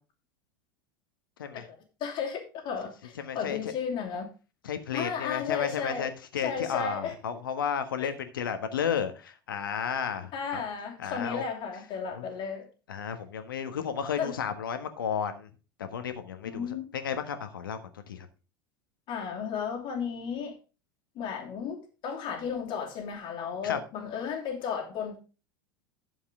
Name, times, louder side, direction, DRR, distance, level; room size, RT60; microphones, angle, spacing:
voice 1, 2.0-4.3 4.9-6.1 6.4-7.1 8.0-8.1 10.3-12.7 14.2-14.3 16.5-16.9 19.1-20.5 21.1-25.2, left 6 dB, 40° left, 2.8 m, -34 dB
voice 2, 3.2-3.7 4.6-10.6 11.0-11.4 12.1-12.3 12.9-15.5 15.8-16.7 16.9-18.3 23.6-23.8, left 7 dB, 70° left, 1.4 m, -33 dB
11.5 x 7.3 x 3.7 m
figure-of-eight pair, 80°, 12 cm